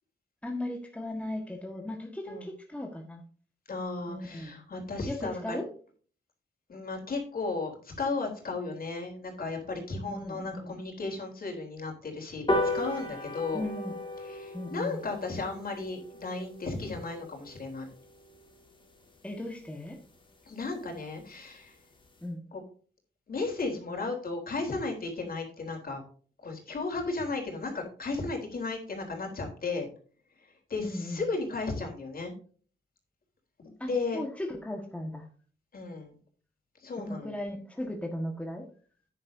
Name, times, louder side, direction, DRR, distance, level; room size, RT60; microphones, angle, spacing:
voice 1, 0.4-3.2 4.1-4.6 5.1-5.7 10.1-10.7 13.5-13.9 14.5-15.0 19.2-20.0 22.2-22.4 30.8-31.2 33.8-35.3 37.0-38.6, left 1 dB, 5° left, 1 dB, 1.6 m, -37 dB
voice 2, 3.7-5.6 6.7-13.6 14.3-17.9 20.5-21.7 22.5-22.6 23.3-26.0 26.4-29.9 30.7-32.3 33.8-34.2 35.7-36.2 36.8-37.3, left 3 dB, 50° left, 1 dB, 3.7 m, -34 dB
sound 1, 12.5-19.2 19.6-19.7 20.1-20.2 20.4-20.5 20.8-20.9 21.2-21.5 21.9-22.0, left 1 dB, 25° left, 2.1 m, -36 dB
10.5 x 9.7 x 2.7 m, 0.43 s
wide cardioid pair, 120°, 19 cm